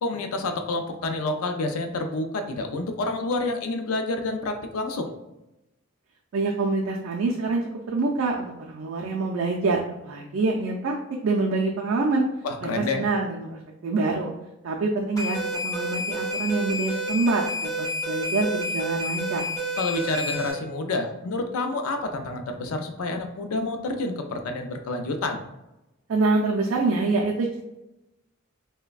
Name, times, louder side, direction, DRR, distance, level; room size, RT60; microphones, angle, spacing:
voice 1, 0.0-5.1 12.4-13.1 19.8-25.4, left 2 dB, 80° left, 6 dB, 0.4 m, -28 dB
voice 2, 6.3-11.0 11.2-12.3 12.6-14.3 14.6-19.4 26.1-27.6, right 3 dB, 65° right, -1 dB, 0.3 m, -26 dB
sound 1, 15.2-20.5, equal, 15° left, 0.7 m, -29 dB
3.2 x 2.1 x 2.3 m, 0.94 s
head